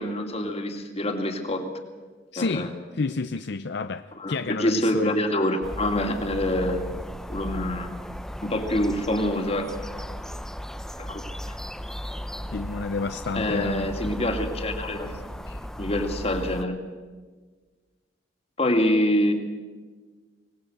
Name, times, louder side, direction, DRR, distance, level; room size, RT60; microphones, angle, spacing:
voice 1, 0.0-1.6 2.4-2.7 4.2-6.8 7.3-7.9 8.4-9.7 11.0-11.6 13.3-15.1 15.8-16.7 18.6-19.3, left 1 dB, 35° left, 5 dB, 2.6 m, -26 dB
voice 2, 2.3-5.2 12.5-14.1 15.5-15.6, left 3 dB, 65° left, 10 dB, 0.6 m, -30 dB
sound 1, 5.6-16.6, equal, 5° left, 0.7 m, -36 dB
25.0 x 18.5 x 8.0 m, 1.4 s
head